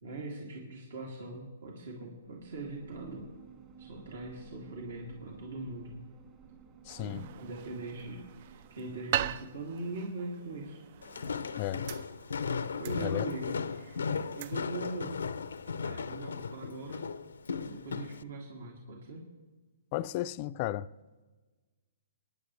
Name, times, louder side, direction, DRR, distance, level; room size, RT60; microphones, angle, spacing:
voice 1, 0.0-3.3 3.8-6.0 7.0-10.8 12.8-15.2 15.8-17.1 17.6-19.3, right 2 dB, 70° right, 2.7 m, -41 dB
sound 1, 2.2-10.1, right 6 dB, 30° right, 1.8 m, -56 dB
voice 2, 6.9-7.2 11.6-11.9 13.0-13.2 19.9-20.9, left 15 dB, 40° left, 0.4 m, -34 dB
sound 2, 6.9-17.0, right 12 dB, 50° right, 0.3 m, -42 dB
Walk footsteps, 11.0-18.2, left 5 dB, 85° left, 0.6 m, -36 dB
26.0 x 10.5 x 3.3 m
hypercardioid pair, 135°, 0 cm